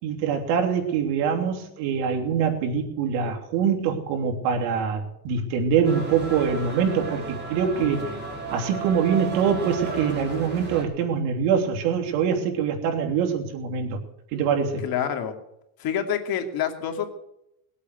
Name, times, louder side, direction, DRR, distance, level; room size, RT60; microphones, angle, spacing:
voice 1, 0.0-8.1 8.5-14.0 14.3-14.8, right 7 dB, 70° right, 3 dB, 3.3 m, -24 dB
sound 1, 5.8-10.8, right 3 dB, 20° right, 6.7 m, -34 dB
voice 2, 7.7-8.2 14.8-15.3 15.8-17.2, left 8 dB, 50° left, 5 dB, 2.7 m, -28 dB
21.0 x 8.4 x 8.1 m, 0.82 s
supercardioid pair, 115°, 46 cm